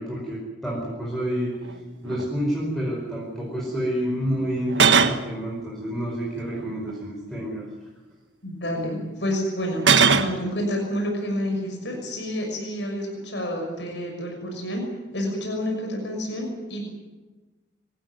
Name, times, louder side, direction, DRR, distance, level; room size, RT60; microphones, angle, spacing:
voice 1, 0.0-1.6 2.0-7.7, equal, ahead, -3 dB, 5.3 m, -29 dB
sound 1, 1.6-1.7 2.0-2.3 4.7-5.2 6.4-6.9 9.8-10.4, right 6 dB, 80° right, 1.3 m, -19 dB
voice 2, 8.4-14.8 15.1-16.9, equal, 75° left, 1 dB, 6.3 m, -29 dB
27.0 x 15.0 x 9.6 m, 1.2 s
head